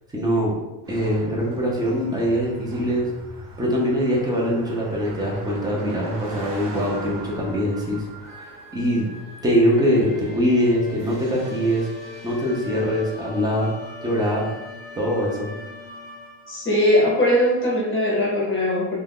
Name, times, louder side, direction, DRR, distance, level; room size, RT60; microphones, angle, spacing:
voice 1, 0.1-0.5 0.9-3.1 3.6-8.0 8.4-8.5 8.7-9.1 9.4-11.9 12.2-13.7 14.0-14.5 15.0-15.5, equal, 10° right, -3 dB, 0.3 m, -22 dB
Car passing by, 0.8-10.4, right 2 dB, 65° right, 0.9 m, -42 dB
sound 1, 1.3-16.8, left 1 dB, 35° right, 0.9 m, -42 dB
voice 2, 16.5-19.0, left 1 dB, 25° left, -5 dB, 0.8 m, -20 dB
2.3 x 2.2 x 3.4 m, 1.0 s
cardioid pair, 150°, 47 cm